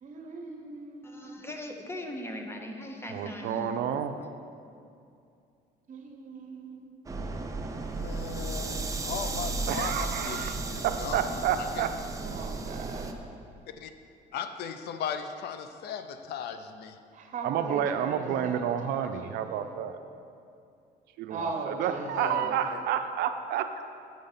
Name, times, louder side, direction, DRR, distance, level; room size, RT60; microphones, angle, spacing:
voice 1, 0.0-1.3 5.9-6.8 12.2-13.2 17.1-19.7 21.3-22.6, right 4 dB, 50° right, 2 dB, 1.2 m, -39 dB
voice 2, 1.0-3.7, left 1 dB, 15° left, 3 dB, 0.8 m, -39 dB
voice 3, 3.1-4.2 9.7-12.0 17.4-20.0 21.2-23.8, right 9 dB, 75° right, 8 dB, 0.5 m, -30 dB
voice 4, 3.9-4.2 8.0-11.9 13.8-13.9 14.3-17.0 22.2-22.4, left 7 dB, 70° left, 8 dB, 0.6 m, -38 dB
sound 1, 7.1-13.1, right 3 dB, 20° right, 0.6 m, -34 dB
7.6 x 5.2 x 5.6 m, 2.5 s
cardioid pair, 110°, 17 cm